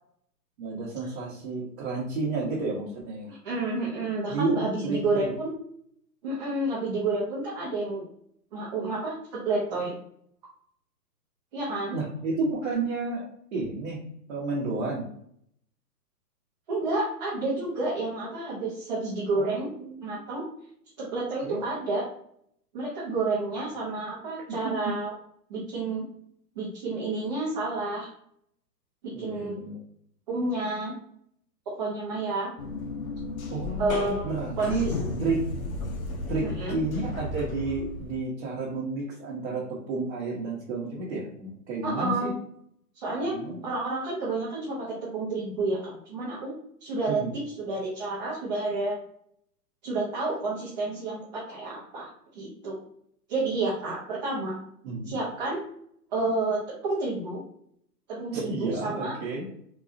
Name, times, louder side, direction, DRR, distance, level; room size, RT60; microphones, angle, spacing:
voice 1, 0.6-3.3 4.3-5.3 11.9-13.2 13.5-14.0 14.3-15.1 19.3-20.2 21.4-21.6 24.5-25.0 29.1-29.8 33.5-34.9 35.2-35.4 36.3-42.3 43.2-43.6 47.1-47.3 54.8-55.2 58.3-59.5, right 3 dB, 45° right, -5 dB, 0.9 m, -31 dB
voice 2, 3.3-5.5 6.2-8.0 8.5-9.9 11.5-12.0 16.7-19.7 20.0-20.4 21.0-22.1 22.7-25.1 25.5-26.0 26.6-28.1 29.0-29.6 30.3-30.9 31.7-32.5 33.8-34.3 34.6-34.7 36.4-36.8 41.8-42.4 42.9-43.4 43.6-46.5 46.8-49.0 49.8-52.1 52.3-52.8 53.3-54.6 55.1-55.6 56.1-57.4 58.1-59.1, right 2 dB, 25° right, -6 dB, 0.6 m, -30 dB
sound 1, 32.6-38.2, left 2 dB, 55° left, 0.7 m, -34 dB
3.9 x 2.3 x 2.4 m, 0.68 s
hypercardioid pair, 150°, 49 cm